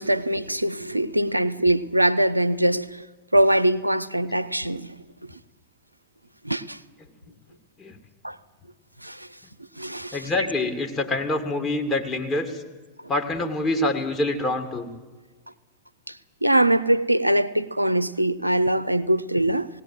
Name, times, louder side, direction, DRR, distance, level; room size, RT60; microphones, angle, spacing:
voice 1, 0.0-3.1 3.3-4.9 6.4-6.8 8.2-8.4 9.0-9.3 9.8-10.3 16.1-16.2 16.4-19.7, right 1 dB, 85° right, 0.6 m, -22 dB
voice 2, 10.1-12.6 13.1-14.9, left 2 dB, 20° left, 2.6 m, -26 dB
19.0 x 18.5 x 7.7 m
figure-of-eight pair, 90°, 0 cm